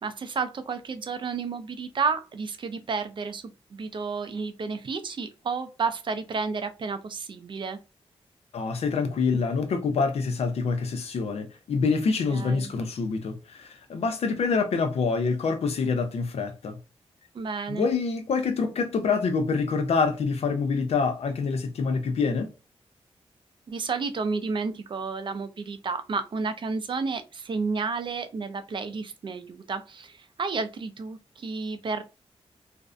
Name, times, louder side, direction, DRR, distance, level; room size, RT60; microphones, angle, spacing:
voice 1, 0.0-3.4 3.7-7.8 12.3-12.7 17.3-17.9 23.7-32.0, right 4 dB, 50° right, 0.4 m, -31 dB
voice 2, 8.5-16.8 17.7-22.5, left 4 dB, 75° left, 0.5 m, -26 dB
2.5 x 2.1 x 2.4 m
wide cardioid pair, 90°, 11 cm